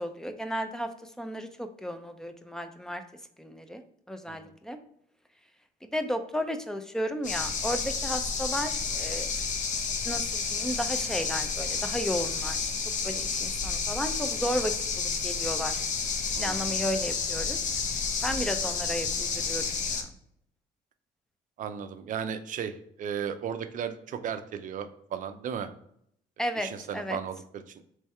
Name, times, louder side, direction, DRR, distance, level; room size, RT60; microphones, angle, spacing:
voice 1, 0.0-3.0 3.4-3.8 4.1-4.8 5.8-9.3 10.0-12.7 13.0-15.8 16.4-17.6 18.2-20.1 26.4-27.2, equal, 5° left, 8 dB, 0.4 m, -33 dB
sound 1, 7.2-20.0, left 5 dB, 45° left, 0.7 m, -30 dB
voice 2, 16.4-16.7 21.6-25.7 26.6-27.6, right 8 dB, 50° right, 9 dB, 0.5 m, -35 dB
3.3 x 3.2 x 4.3 m, 0.70 s
cardioid pair, 110°, 17 cm